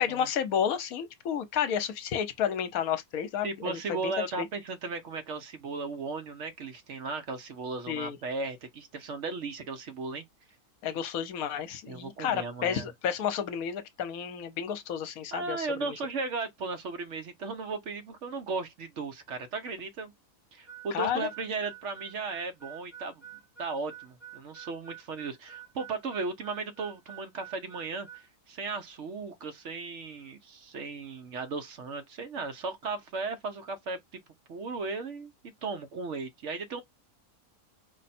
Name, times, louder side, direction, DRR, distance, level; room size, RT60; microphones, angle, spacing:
voice 1, 0.0-4.1 4.4-4.5 7.9-8.2 10.8-15.9 20.9-21.3, left 8 dB, 70° left, 1.2 m, -31 dB
voice 2, 3.4-10.2 11.9-12.9 15.3-20.1 20.5-23.2 23.6-34.0 34.5-36.8, right 4 dB, 60° right, 1.0 m, -36 dB
Harmonica, 20.7-28.3, right 10 dB, 30° right, 1.5 m, -48 dB
5.3 x 2.2 x 4.2 m
omnidirectional pair, 1.6 m